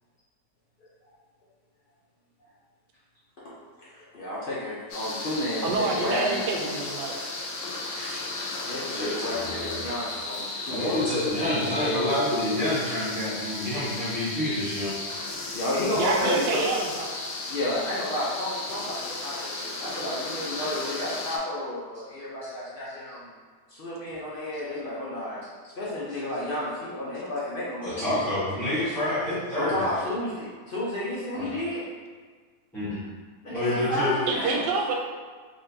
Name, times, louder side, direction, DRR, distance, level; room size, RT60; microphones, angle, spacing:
voice 1, 3.8-6.7 8.7-11.0 15.5-16.6 17.5-23.3 23.7-25.4 25.8-28.2 29.5-31.8 33.4-34.7, left 1 dB, 60° left, -8 dB, 0.5 m, -31 dB
sound 1, 4.9-21.4, left 2 dB, 90° left, 1.3 m, -35 dB
voice 2, 5.6-7.2 15.9-17.1 34.3-34.9, right 4 dB, 85° right, 0 dB, 1.2 m, -27 dB
voice 3, 8.9-9.8 10.7-14.9 27.8-29.8 31.3-31.5 32.7-33.0 33.5-34.1, left 1 dB, ahead, -15 dB, 0.8 m, -28 dB
4.0 x 2.9 x 2.7 m, 1.6 s
omnidirectional pair, 1.8 m